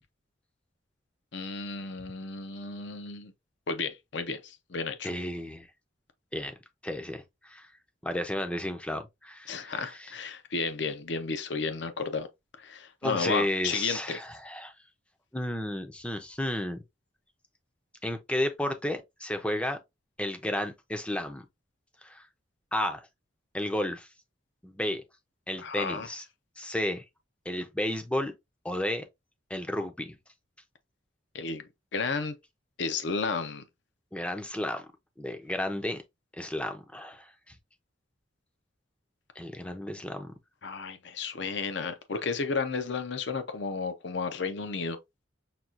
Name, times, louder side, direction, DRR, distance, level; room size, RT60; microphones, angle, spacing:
voice 1, 1.3-3.3 3.7-5.1 9.5-12.3 12.6-14.2 25.6-26.1 31.3-31.6 31.9-32.4 32.8-33.6 40.6-45.0, left 4 dB, 65° left, 0.6 m, -32 dB
voice 2, 5.0-5.7 6.3-6.5 6.8-7.7 8.0-10.1 13.0-14.7 15.3-16.8 18.0-19.8 20.2-21.4 22.0-22.3 22.7-23.1 23.5-24.1 24.6-25.0 25.5-26.2 26.6-27.0 27.5-28.3 28.6-29.0 29.5-30.2 34.1-34.9 35.2-36.0 36.4-37.5 39.4-40.3, left 1 dB, 5° left, 0.5 m, -32 dB
5.8 x 2.3 x 2.5 m
head